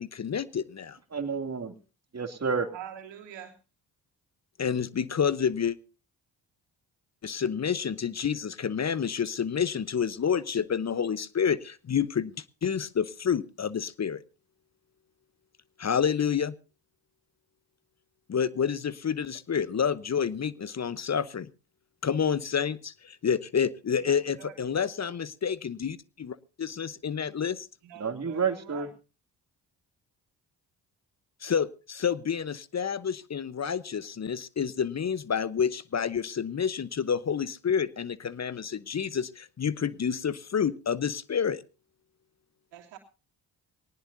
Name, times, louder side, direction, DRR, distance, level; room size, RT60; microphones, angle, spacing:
voice 1, 0.0-1.0 4.6-5.8 7.2-12.3 12.6-14.2 15.8-16.5 18.3-21.5 22.0-27.7 31.4-41.6, left 7 dB, 40° left, 18 dB, 0.9 m, -29 dB
voice 2, 1.1-1.7 2.1-2.7 28.0-28.9, right 5 dB, 35° right, 7 dB, 2.6 m, -29 dB
voice 3, 2.7-3.6 24.0-24.5 25.0-25.1 27.8-28.9 42.7-43.0, right 10 dB, 80° right, 2 dB, 3.0 m, -45 dB
20.5 x 18.5 x 2.7 m, 0.33 s
supercardioid pair, 50°, 43 cm